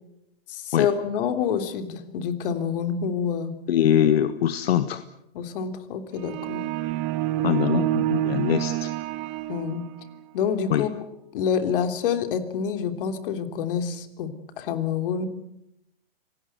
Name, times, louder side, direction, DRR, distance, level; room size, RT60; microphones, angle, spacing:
voice 1, 0.5-3.5 5.3-6.6 9.5-9.8 10.3-10.9 11.3-14.3 14.6-15.3, left 7 dB, 60° left, 9 dB, 3.3 m, -27 dB
voice 2, 3.7-5.0 7.4-8.9 10.7-10.9, left 10 dB, 80° left, 11 dB, 1.5 m, -22 dB
sound 1, 6.2-10.1, right 14 dB, 40° right, 1.8 m, -27 dB
26.0 x 19.0 x 8.0 m, 0.82 s
hypercardioid pair, 140°, 31 cm